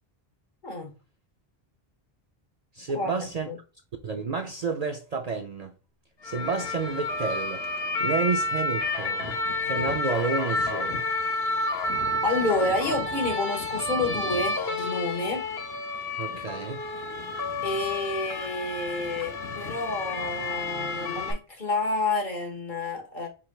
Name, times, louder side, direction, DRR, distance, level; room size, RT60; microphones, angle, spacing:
voice 1, 2.7-3.5 4.0-5.7 6.2-7.6 8.0-9.4 9.6-11.0 16.2-16.8, right 4 dB, 50° right, 0.5 m, -30 dB
sound 1, 6.2-21.3, left 2 dB, 75° left, 1.2 m, -30 dB
voice 2, 12.2-15.4 17.6-23.3, left 2 dB, 55° left, 1.5 m, -29 dB
4.9 x 4.4 x 2.3 m
omnidirectional pair, 1.0 m